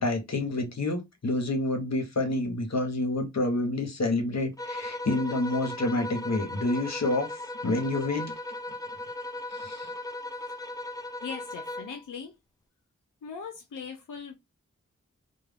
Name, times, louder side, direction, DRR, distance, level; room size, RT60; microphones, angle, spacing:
voice 1, 0.0-8.3 9.5-9.9, left 2 dB, 60° left, 0.8 m, -28 dB
sound 1, 4.6-12.0, left 1 dB, 15° left, 0.3 m, -37 dB
voice 2, 11.2-12.4 13.2-14.3, left 6 dB, 90° left, 0.5 m, -39 dB
2.3 x 2.1 x 3.3 m
wide cardioid pair, 50°, 30 cm